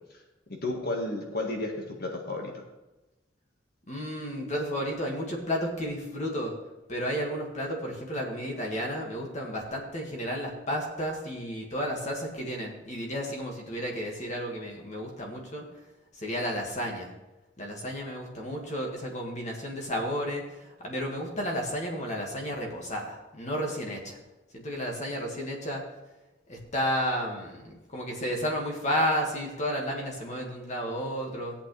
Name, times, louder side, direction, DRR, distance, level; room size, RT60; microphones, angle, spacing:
voice 1, 0.5-2.5, left 2 dB, 55° left, 1 dB, 1.7 m, -32 dB
voice 2, 3.9-6.5 6.9-15.6 16.2-17.1 17.6-24.2 24.5-25.8 26.5-31.5, equal, 40° left, 0 dB, 2.1 m, -32 dB
15.0 x 8.6 x 3.4 m, 1.0 s
head